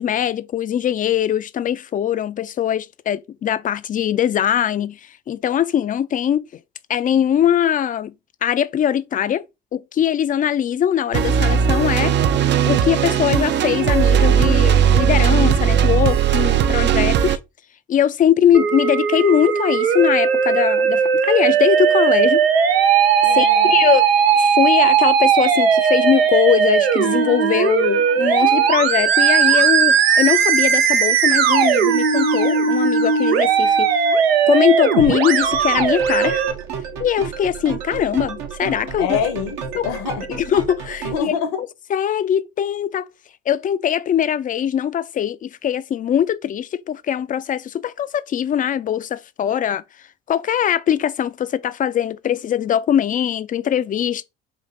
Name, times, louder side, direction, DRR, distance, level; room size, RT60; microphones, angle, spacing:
voice 1, 0.0-6.5 6.9-8.1 8.4-9.4 9.7-12.2 12.7-17.4 17.9-22.5 23.3-24.1 24.3-34.1 34.5-36.4 37.0-39.2 39.8-39.9 40.3-41.3 41.9-43.1 43.5-49.8 50.3-54.2, left 10 dB, 30° left, 0.3 m, -21 dB
sound 1, 11.1-17.4, right 8 dB, 40° right, 0.4 m, -17 dB
Musical instrument, 18.5-36.5, right 7 dB, 90° right, 0.5 m, -17 dB
voice 2, 23.2-23.8 39.0-40.4 41.0-41.7, left 7 dB, 70° left, 0.9 m, -26 dB
sound 2, 35.4-41.2, right 6 dB, 65° right, 1.0 m, -32 dB
3.5 x 2.6 x 3.7 m
hypercardioid pair, 55°, 30 cm